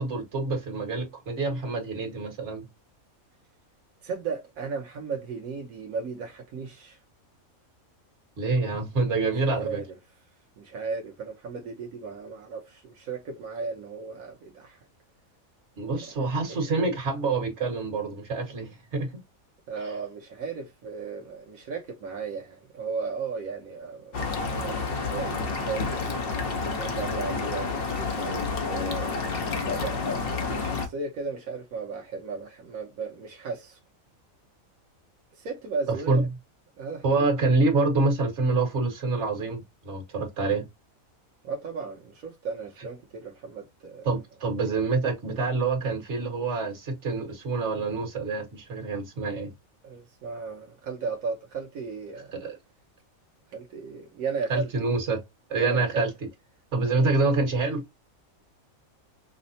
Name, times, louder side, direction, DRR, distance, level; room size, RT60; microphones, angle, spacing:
voice 1, 0.0-2.7 8.4-9.8 15.8-19.2 36.1-36.3 37.0-40.7 44.0-49.5 52.4-52.5 54.5-55.2 55.5-56.1 56.7-57.8, right 3 dB, 55° right, 1.6 m, -26 dB
voice 2, 4.0-7.0 9.3-10.0 10.6-14.8 16.0-16.7 19.7-24.2 24.5-26.2 26.7-29.1 29.8-30.0 30.5-33.8 35.3-36.3 36.8-37.0 41.4-44.2 44.6-44.7 49.8-52.3 53.5-54.9 55.5-56.1 56.8-57.1, right 4 dB, 80° right, 1.2 m, -35 dB
sound 1, 24.1-30.9, left 4 dB, 50° left, 1.0 m, -29 dB
5.8 x 2.1 x 2.6 m
omnidirectional pair, 1.4 m